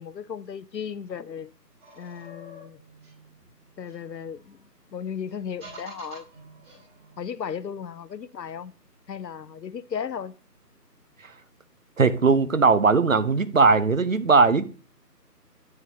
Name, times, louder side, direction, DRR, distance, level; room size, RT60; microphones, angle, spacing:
voice 1, 0.0-1.5 2.0-2.8 3.8-6.3 7.2-8.7 9.1-10.3, left 7 dB, 85° left, 0.6 m, -35 dB
sound 1, 1.8-4.5 5.3-7.2, right 1 dB, 15° right, 3.0 m, -47 dB
voice 2, 12.0-14.7, right 4 dB, 55° right, 0.6 m, -19 dB
9.1 x 6.4 x 2.8 m
figure-of-eight pair, 160°, 49 cm